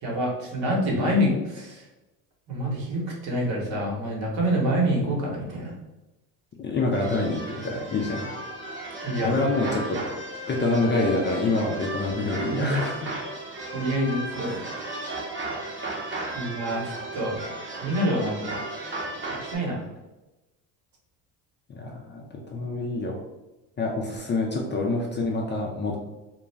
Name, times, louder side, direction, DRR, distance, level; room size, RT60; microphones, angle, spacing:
voice 1, 0.0-1.8 2.5-5.7 9.0-9.4 12.5-12.8 13.7-14.6 16.3-16.8 17.1-17.4 17.7-18.5 19.4-19.8, equal, 65° right, -2 dB, 1.2 m, -26 dB
voice 2, 6.6-8.2 9.2-10.0 10.5-13.1 14.4-14.6 16.3-16.4 21.7-23.2 23.8-26.0, left 2 dB, 25° left, 0 dB, 0.4 m, -27 dB
sound 1, 6.9-19.6, right 2 dB, 25° right, 0.8 m, -35 dB
2.4 x 2.0 x 3.3 m, 1.0 s
supercardioid pair, 75°, 48 cm